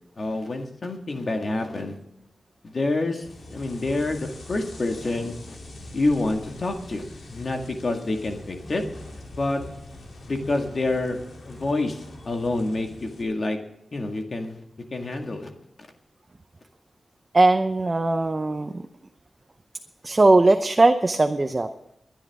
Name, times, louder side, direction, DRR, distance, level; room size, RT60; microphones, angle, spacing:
voice 1, 0.2-1.9 2.6-5.6 5.9-8.8 9.3-9.6 10.3-11.2 11.4-13.6 13.9-14.6 14.9-15.5, left 2 dB, 45° left, 4 dB, 1.9 m, -27 dB
sound 1, 3.2-13.2, left 1 dB, 75° left, 3.0 m, -43 dB
voice 2, 17.3-18.9 20.0-21.7, right 2 dB, 30° right, 7 dB, 0.7 m, -19 dB
23.5 x 10.5 x 3.6 m, 0.83 s
wide cardioid pair, 140°, 0 cm